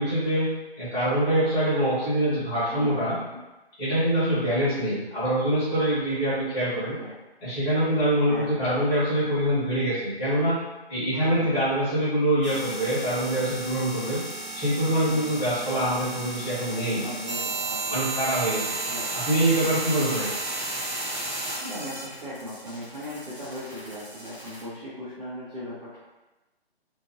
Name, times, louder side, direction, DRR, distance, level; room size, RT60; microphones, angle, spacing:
voice 1, 0.0-3.1 3.8-7.0 7.4-10.6 10.9-14.2 14.5-17.0 17.9-18.7 19.1-20.3, right 1 dB, 20° left, -14 dB, 1.4 m, -24 dB
voice 2, 2.7-3.4 4.3-4.5 6.6-7.1 8.3-8.8 11.1-11.6 15.1-15.3 16.7-18.1 18.8-19.1 19.6-19.7 21.4-26.0, left 1 dB, 40° right, -11 dB, 1.0 m, -39 dB
sound 1, 12.4-24.6, right 2 dB, 15° right, 0.8 m, -33 dB
2.9 x 2.6 x 2.8 m, 1.1 s
figure-of-eight pair, 150°, 32 cm